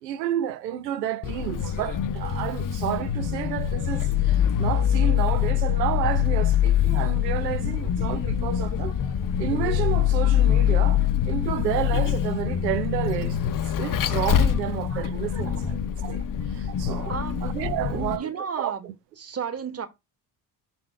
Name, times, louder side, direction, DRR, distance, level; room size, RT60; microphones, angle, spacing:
voice 1, 0.0-9.0 9.4-16.2 16.5-17.1 17.4-18.3 18.6-18.9, right 11 dB, 90° right, 0.7 m, -30 dB
Vehicle, 1.2-18.2, left 10 dB, 40° left, 0.8 m, -24 dB
voice 2, 17.1-17.5 17.9-18.9 19.2-19.9, right 7 dB, 30° right, 1.4 m, -32 dB
5.9 x 4.3 x 4.4 m
hypercardioid pair, 45°, 49 cm